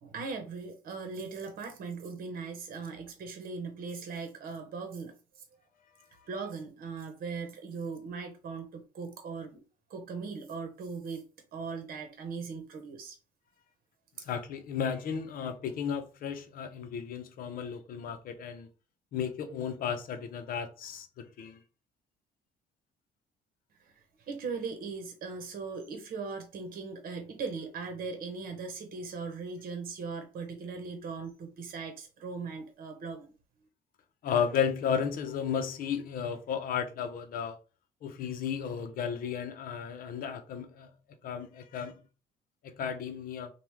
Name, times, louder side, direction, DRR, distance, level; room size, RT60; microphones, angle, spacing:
voice 1, 0.0-5.4 6.3-9.6 9.9-11.2 11.5-13.2 23.8-23.9 24.3-33.3, right 4 dB, 60° right, 0.9 m, -39 dB
voice 2, 14.2-18.7 19.1-21.6 34.2-37.6 38.0-40.9 41.2-41.9 42.6-43.5, left 7 dB, 60° left, 0.7 m, -34 dB
3.0 x 2.3 x 3.5 m
cardioid pair, 110°, 17 cm